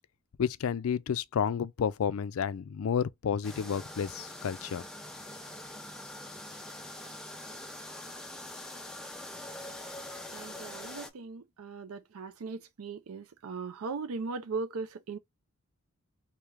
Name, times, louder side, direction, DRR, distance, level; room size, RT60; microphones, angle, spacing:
voice 1, 0.4-4.8, left 7 dB, 70° left, 0.4 m, -31 dB
sound 1, 3.4-11.1, left 1 dB, 5° left, 0.5 m, -44 dB
voice 2, 10.3-15.2, right 4 dB, 80° right, 0.5 m, -38 dB
3.1 x 2.8 x 3.4 m
head